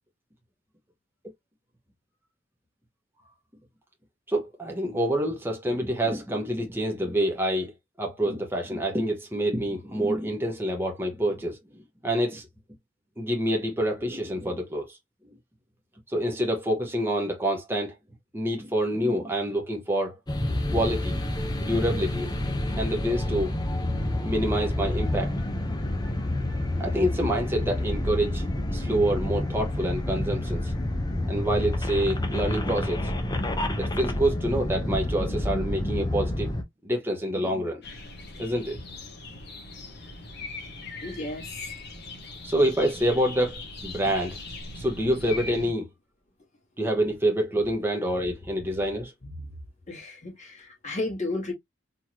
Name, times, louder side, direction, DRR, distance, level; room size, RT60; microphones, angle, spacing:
voice 1, 4.3-7.7 8.0-11.6 12.0-12.5 13.2-15.0 16.1-17.9 18.3-20.2 20.7-21.2 21.6-22.3 22.8-23.5 23.9-25.3 26.8-28.4 28.7-30.7 31.3-33.1 33.8-36.5 36.8-37.8 38.4-38.8 42.4-44.4 44.7-45.9 46.8-49.1, right 1 dB, 10° right, 0.9 m, -27 dB
sound 1, 20.3-36.6, left 1 dB, 20° left, 0.9 m, -28 dB
sound 2, 37.8-45.7, left 3 dB, 60° left, 1.5 m, -40 dB
voice 2, 41.0-41.7 49.2-49.5 49.9-51.5, left 2 dB, 40° left, 2.1 m, -34 dB
4.2 x 2.8 x 3.0 m
head